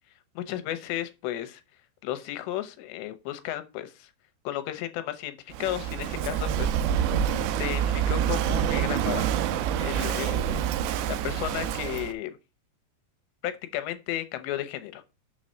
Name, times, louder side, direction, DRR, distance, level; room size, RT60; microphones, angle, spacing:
voice 1, 0.4-1.6 2.0-4.1 4.4-6.8 7.4-9.3 9.8-10.6 11.1-12.4 13.4-15.0, left 13 dB, 80° left, 3.1 m, -34 dB
Walk footsteps / Wind / Waves surf, 5.5-12.1, right 9 dB, 90° right, 2.9 m, -27 dB
6.8 x 5.6 x 6.3 m
omnidirectional pair, 5.1 m